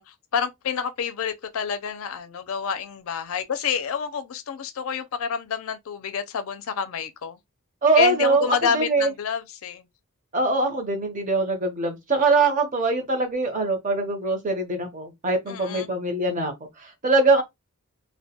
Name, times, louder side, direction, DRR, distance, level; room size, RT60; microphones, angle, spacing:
voice 1, 0.0-7.4 7.9-9.9 15.5-15.9 17.3-17.4, left 7 dB, 70° left, 0.4 m, -28 dB
voice 2, 7.8-9.1 10.3-16.5 16.8-17.4, right 3 dB, 35° right, 0.7 m, -22 dB
2.1 x 2.1 x 2.8 m
head